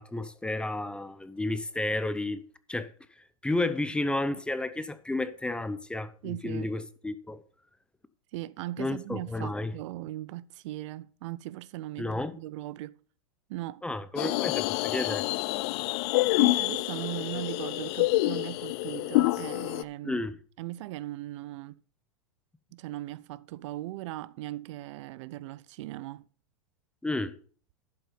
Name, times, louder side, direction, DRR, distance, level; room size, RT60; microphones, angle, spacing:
voice 1, 0.0-2.4 2.7-2.9 3.2-7.4 8.8-9.7 12.0-12.4 13.8-15.3 20.0-20.4 27.0-27.4, left 2 dB, 5° left, 0.6 m, -32 dB
voice 2, 6.2-6.7 8.3-12.9 13.5-13.8 16.0-20.2 20.6-21.8 22.7-26.2, right 16 dB, 60° right, 0.4 m, -39 dB
sound 1, 14.2-19.8, left 21 dB, 50° left, 0.4 m, -27 dB
11.5 x 5.4 x 5.0 m
hypercardioid pair, 115°, 18 cm